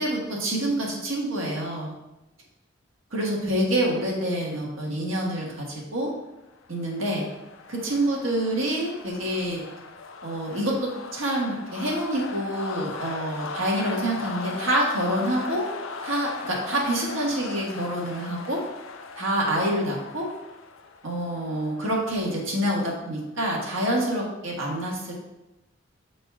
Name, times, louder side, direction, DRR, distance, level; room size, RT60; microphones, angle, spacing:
voice 1, 0.0-1.9 3.1-6.1 6.7-7.3 7.7-9.6 10.2-15.6 16.0-18.6 19.2-20.3 21.0-25.1, right 1 dB, 75° right, -2 dB, 1.6 m, -27 dB
sound 1, 6.5-23.2, left 4 dB, 75° left, 0.5 m, -39 dB
7.1 x 4.1 x 3.5 m, 0.96 s
head